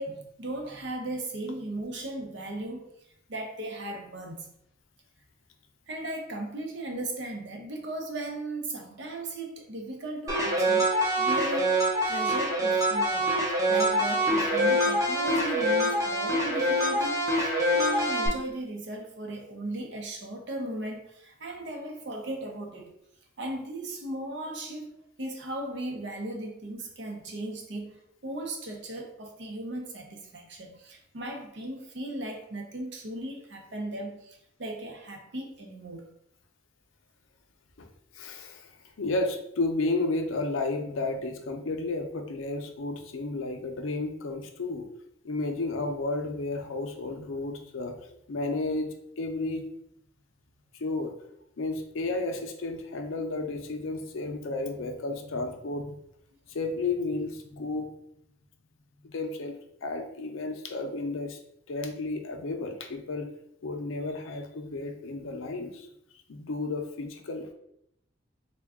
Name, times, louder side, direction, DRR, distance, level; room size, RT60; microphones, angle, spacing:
voice 1, 0.0-2.9 3.3-4.5 5.9-10.9 11.2-22.9 23.4-36.1, right 1 dB, 60° right, 2 dB, 0.7 m, -37 dB
sound 1, 10.3-18.3, equal, 15° right, 0.6 m, -25 dB
voice 2, 38.1-38.7 39.0-44.9 45.2-47.9 48.3-49.7 50.8-51.1 51.6-56.0 56.5-57.9 59.0-61.4 61.7-63.3 63.6-65.9 66.3-67.5, left 2 dB, 85° left, 5 dB, 0.5 m, -32 dB
3.6 x 2.2 x 3.5 m, 0.75 s
head